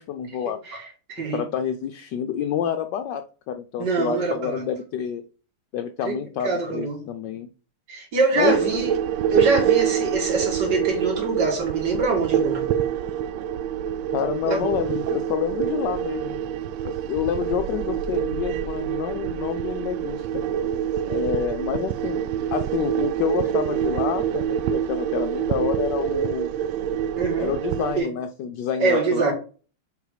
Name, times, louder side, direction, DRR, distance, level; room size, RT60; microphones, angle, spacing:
voice 1, 0.0-0.6 1.3-5.2 5.7-7.5 8.3-8.5 14.1-16.4 16.8-20.4 21.1-26.5 27.4-29.3, left 8 dB, 75° left, 6 dB, 1.0 m, -28 dB
voice 2, 0.7-1.4 3.8-4.6 6.0-6.1 6.4-7.0 7.9-8.9 9.3-12.6 14.5-14.7 27.2-27.6 28.0-28.1 28.8-29.3, right 3 dB, 50° right, 1 dB, 2.7 m, -24 dB
sound 1, 8.4-28.0, right 9 dB, 75° right, 1.2 m, -26 dB
7.0 x 4.0 x 4.9 m, 0.37 s
omnidirectional pair, 2.4 m